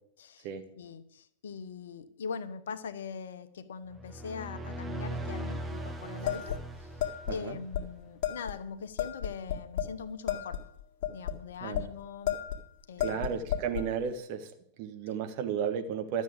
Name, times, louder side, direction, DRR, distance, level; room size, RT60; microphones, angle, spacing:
voice 1, 0.2-0.5 0.8-7.0 7.3-10.6 11.1-12.4 12.9-13.6 15.1-15.2, left 6 dB, 65° left, 12 dB, 0.9 m, -42 dB
sound 1, 3.9-7.8, right 1 dB, 10° right, 1.3 m, -39 dB
sound 2, 6.3-7.4 7.7-7.8 8.2-8.6 9.0-10.0 10.3-11.9 12.3-12.6 13.0-13.9, left 10 dB, 45° left, 2.1 m, -33 dB
voice 2, 7.3-7.6 11.6-11.8 13.0-14.5 14.8-16.2, right 7 dB, 45° right, 6 dB, 1.6 m, -33 dB
12.5 x 7.3 x 8.6 m, 0.71 s
figure-of-eight pair, 90°, 0 cm